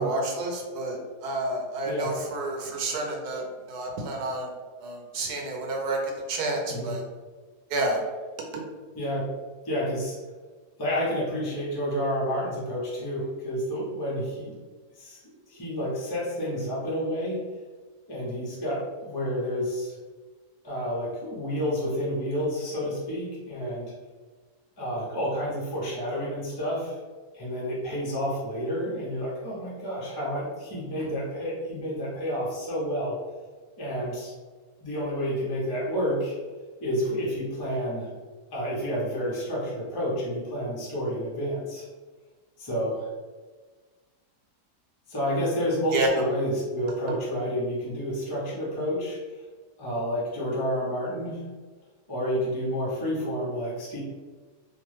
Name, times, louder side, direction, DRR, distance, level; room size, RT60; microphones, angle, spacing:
voice 1, 0.0-4.5 4.8-7.0 7.7-8.0 8.5-8.6 45.9-46.1, right 2 dB, 80° right, 1 dB, 1.1 m, -30 dB
voice 2, 8.9-9.3 9.6-10.2 10.8-14.5 15.0-17.4 18.1-19.9 20.6-23.9 24.8-27.0 27.3-33.2 33.8-34.3 34.8-36.4 36.8-38.1 38.5-41.9 42.6-43.1 45.1-49.2 49.8-51.4 52.1-54.0, equal, 35° left, -7 dB, 0.3 m, -30 dB
2.9 x 2.1 x 3.1 m, 1.4 s
omnidirectional pair, 1.7 m